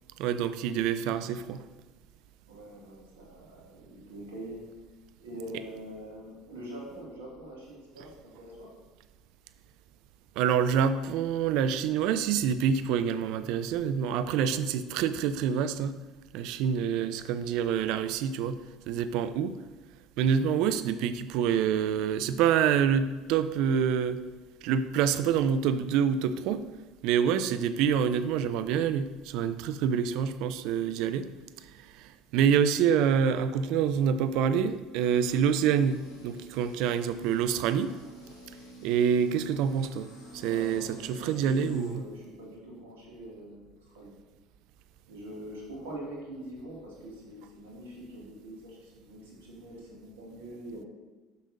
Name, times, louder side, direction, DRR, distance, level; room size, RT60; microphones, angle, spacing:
voice 1, 0.2-1.6 10.4-16.0 16.3-18.6 18.9-19.6 20.2-24.2 24.6-26.7 27.0-31.3 31.6-37.9 38.8-42.0, right 8 dB, 70° right, 12 dB, 0.4 m, -27 dB
voice 2, 2.5-4.6 5.2-8.7 40.4-44.1 45.1-50.9, right 1 dB, 85° right, -4 dB, 2.2 m, -44 dB
sound 1, 34.9-41.9, right 1 dB, 80° left, 2.3 m, -49 dB
9.2 x 6.6 x 2.6 m, 1.2 s
hypercardioid pair, 70°, 0 cm